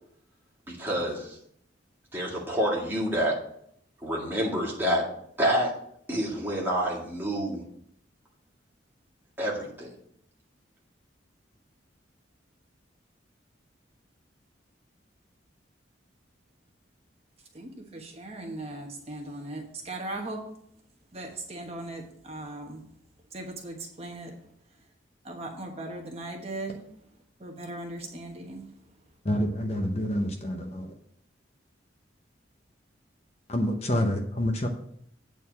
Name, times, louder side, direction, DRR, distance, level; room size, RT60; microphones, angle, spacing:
voice 1, 0.7-1.4 2.1-3.4 4.0-5.1 5.4-5.7 6.1-7.6 9.4-9.9, equal, 10° right, -4 dB, 2.2 m, -28 dB
voice 2, 17.5-20.5 21.1-22.8 23.3-24.3 25.2-26.8 27.4-28.7, right 2 dB, 30° right, 1 dB, 1.2 m, -38 dB
voice 3, 29.2-30.9 33.5-34.7, left 1 dB, 35° left, 4 dB, 0.8 m, -27 dB
8.9 x 4.3 x 7.4 m, 0.70 s
head